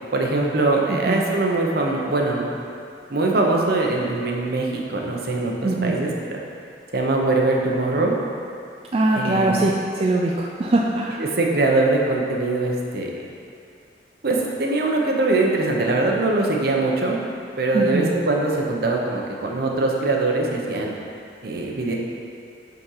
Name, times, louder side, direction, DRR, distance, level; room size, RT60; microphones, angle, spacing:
voice 1, 0.1-2.4 3.1-6.4 6.9-8.1 9.1-9.6 11.2-13.1 14.2-17.2 17.6-20.9 21.4-21.9, right 2 dB, 60° right, 0 dB, 0.9 m, -22 dB
voice 2, 5.6-6.0 8.9-11.2 17.7-18.1, right 2 dB, 35° right, -2 dB, 0.4 m, -22 dB
5.6 x 5.1 x 5.6 m, 2.4 s
head